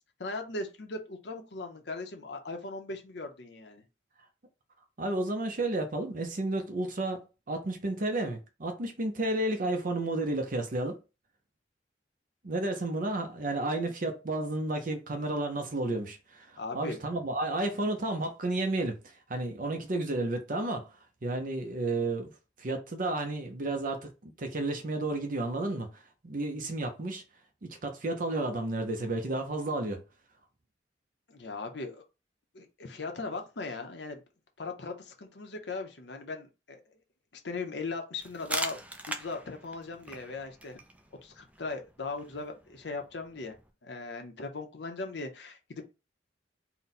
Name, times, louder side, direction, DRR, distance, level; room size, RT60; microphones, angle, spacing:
voice 1, 0.2-3.8 16.6-17.0 31.3-32.0 32.5-34.2 34.6-37.0 37.3-38.8 39.1-40.8 41.2-43.6 43.8-45.8, left 3 dB, 65° left, 0.8 m, -38 dB
voice 2, 5.0-11.0 12.4-20.9 21.2-22.3 22.6-27.2 27.6-30.0, right 2 dB, 45° right, 0.7 m, -32 dB
sound 1, 38.2-43.7, right 2 dB, 10° right, 0.4 m, -41 dB
3.9 x 2.2 x 4.1 m
head